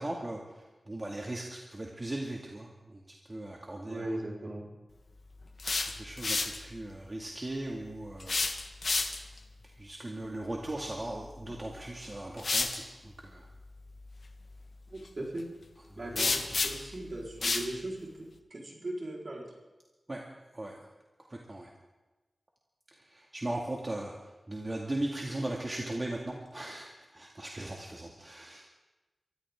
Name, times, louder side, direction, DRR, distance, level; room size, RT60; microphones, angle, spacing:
voice 1, 0.0-3.0 3.3-4.2 6.0-8.4 9.6-13.5 15.9-16.4 20.1-20.2 20.5-20.8 21.3-21.7 22.9-28.6, right 1 dB, 35° right, -1 dB, 2.2 m, -38 dB
voice 2, 3.9-4.6 14.9-15.5 16.0-19.5, right 1 dB, 50° right, -2 dB, 4.2 m, -38 dB
sound 1, 5.4-6.6 8.2-9.4 11.4-11.6 12.4-12.8 16.2-16.9 17.4-17.7, left 3 dB, 65° left, 1.4 m, -30 dB
24.0 x 14.0 x 3.7 m, 1.1 s
cardioid pair, 50°, 0 cm